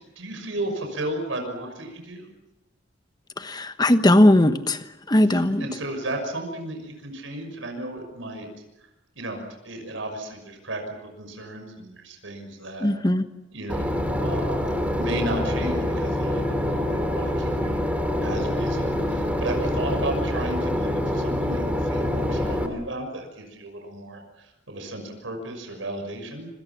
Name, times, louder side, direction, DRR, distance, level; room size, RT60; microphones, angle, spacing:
voice 1, 0.0-2.3 5.3-8.5 9.2-12.9 13.5-16.8 17.1-17.8 18.2-26.5, right 1 dB, 85° right, 4 dB, 6.2 m, -34 dB
voice 2, 3.4-5.7 12.8-13.3, left 1 dB, 20° left, 9 dB, 1.2 m, -19 dB
Boat Water vehicle / Engine, 13.7-22.7, left 1 dB, 10° right, 3.1 m, -25 dB
26.5 x 26.0 x 6.0 m, 0.96 s
head